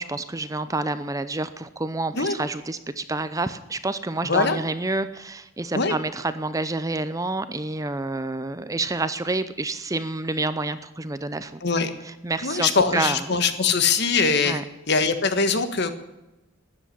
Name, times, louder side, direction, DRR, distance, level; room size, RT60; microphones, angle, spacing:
voice 1, 0.0-11.6 12.0-13.2 14.4-14.6, right 2 dB, 15° right, 12 dB, 0.7 m, -28 dB
voice 2, 4.2-4.6 5.7-5.9 11.6-11.9 12.4-14.6 14.9-15.9, left 4 dB, 55° left, 9 dB, 1.5 m, -22 dB
13.5 x 10.0 x 9.9 m, 0.99 s
head